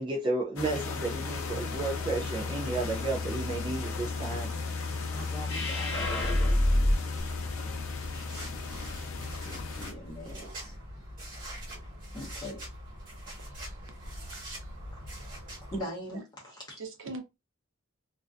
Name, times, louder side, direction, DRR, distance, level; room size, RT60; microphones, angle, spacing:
voice 1, 0.0-4.5, right 2 dB, 20° right, 0.3 m, -32 dB
sound 1, 0.6-9.9, left 4 dB, 80° left, 0.6 m, -35 dB
voice 2, 5.1-7.8 9.4-10.8 12.1-12.7 13.3-13.5 14.9-15.0 15.7-16.8, equal, 20° left, 0.7 m, -42 dB
sound 2, 5.4-6.9, left 1 dB, 60° left, 0.8 m, -26 dB
sound 3, 7.2-15.8, equal, 40° right, 1.3 m, -43 dB
voice 3, 13.4-13.8 14.4-14.5 16.1-16.2 16.5-17.2, right 2 dB, 65° right, 0.7 m, -43 dB
2.4 x 2.2 x 2.4 m
head